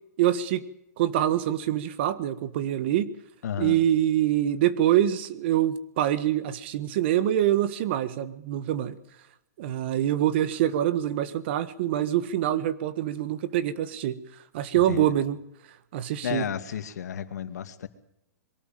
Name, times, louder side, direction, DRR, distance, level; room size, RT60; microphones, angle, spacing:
voice 1, 0.2-0.6 1.0-3.1 3.6-9.0 9.6-14.2 14.5-15.4 15.9-16.5, right 12 dB, 40° right, 15 dB, 1.5 m, -25 dB
voice 2, 3.4-3.8 14.7-15.1 16.2-17.9, left 9 dB, 75° left, 10 dB, 2.4 m, -32 dB
22.5 x 13.0 x 9.1 m, 0.79 s
hypercardioid pair, 170°, 9 cm